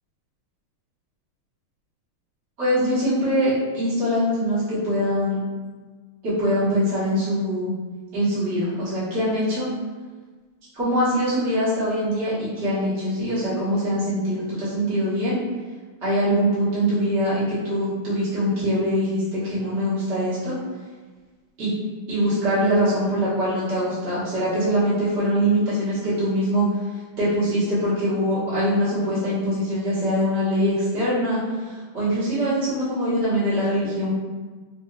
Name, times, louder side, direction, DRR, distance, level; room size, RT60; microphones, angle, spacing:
voice 1, 2.6-5.4 6.2-7.7 8.1-9.7 10.7-15.4 16.0-20.6 21.6-21.7 22.1-26.7 27.2-31.4 31.7-34.1, equal, 35° right, -12 dB, 1.3 m, -23 dB
4.6 x 2.6 x 2.3 m, 1.4 s
omnidirectional pair, 2.4 m